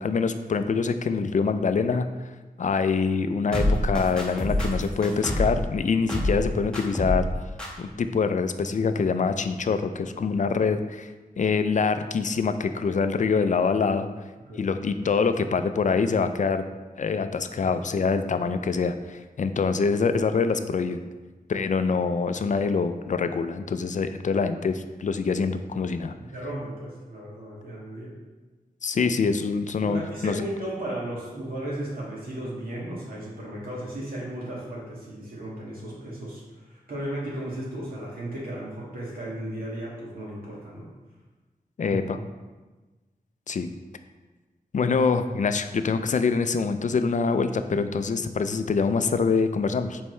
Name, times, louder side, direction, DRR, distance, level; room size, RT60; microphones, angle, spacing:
voice 1, 0.0-2.1 2.6-7.2 7.8-11.1 11.4-14.1 14.6-16.6 17.0-21.0 21.5-26.1 28.8-30.3 41.8-42.2 43.5-43.7 44.7-50.0, left 5 dB, 55° left, 9 dB, 0.4 m, -25 dB
sound 1, 3.5-5.6 6.1-6.5 6.7-7.3 7.6-7.7, left 1 dB, 5° left, 1.3 m, -26 dB
voice 2, 25.9-28.1 29.8-40.9 41.8-42.0, right 1 dB, 75° right, -5 dB, 2.0 m, -35 dB
7.2 x 4.3 x 3.2 m, 1.2 s
wide cardioid pair, 80°, 15 cm